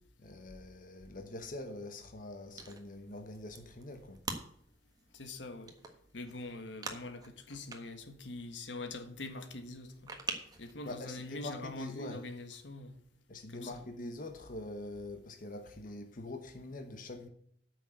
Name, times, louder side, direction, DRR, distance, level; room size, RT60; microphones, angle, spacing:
voice 1, 0.2-4.2 10.3-10.4 10.8-12.2 13.3-17.3, left 2 dB, 50° left, 1.1 m, -44 dB
sound 1, 2.5-10.7, right 3 dB, 20° right, 1.4 m, -47 dB
voice 2, 5.1-5.7 6.1-10.1 10.6-13.0 13.5-13.8, left 2 dB, 85° left, 1.4 m, -44 dB
8.9 x 6.3 x 8.1 m
head